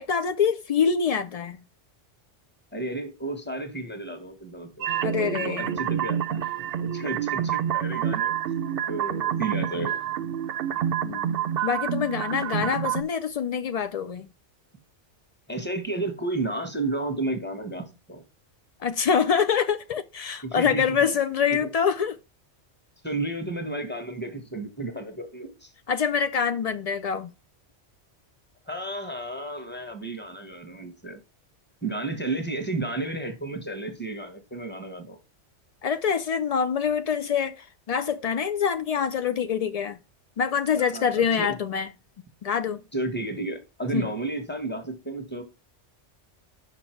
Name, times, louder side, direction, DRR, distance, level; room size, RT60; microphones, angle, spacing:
voice 1, 0.0-1.6 5.0-5.7 11.0-11.3 11.6-14.3 18.8-22.2 25.9-27.3 35.8-40.0 40.4-41.9 42.4-42.8 43.9-44.1, left 7 dB, 80° left, 0.3 m, -25 dB
voice 2, 2.7-4.8 5.4-6.4 6.8-8.3 8.9-10.0 12.6-12.7 15.5-18.2 20.4-20.8 21.6-21.7 23.0-25.7 28.6-31.2 31.8-35.2 40.8-41.5 42.9-45.4, right 2 dB, 10° left, 1.2 m, -32 dB
sound 1, 4.8-13.0, right 9 dB, 65° right, 0.7 m, -28 dB
6.0 x 5.3 x 4.5 m
omnidirectional pair, 1.2 m